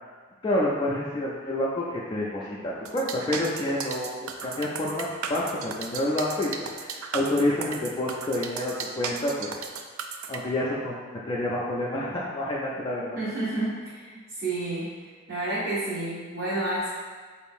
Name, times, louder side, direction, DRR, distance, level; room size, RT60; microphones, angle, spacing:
voice 1, 0.4-9.6 10.3-13.2, left 1 dB, 25° left, -5 dB, 0.3 m, -28 dB
sound 1, 2.9-10.4, right 6 dB, 85° right, 0.4 m, -35 dB
voice 2, 13.2-16.9, right 2 dB, 50° right, -10 dB, 0.9 m, -30 dB
4.4 x 2.5 x 3.5 m, 1.5 s
head